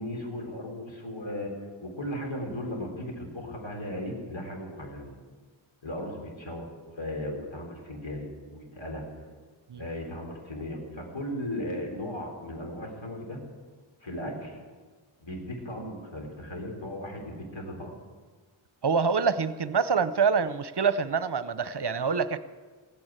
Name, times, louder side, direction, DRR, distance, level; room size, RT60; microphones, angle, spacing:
voice 1, 0.0-1.5 1.8-5.1 5.8-9.0 9.8-13.4 14.0-14.6 15.2-17.9, left 1 dB, 65° left, 1 dB, 4.1 m, -36 dB
voice 2, 18.8-22.4, right 5 dB, 55° right, 14 dB, 0.8 m, -26 dB
16.5 x 9.7 x 9.0 m, 1.5 s
wide cardioid pair, 50°, 49 cm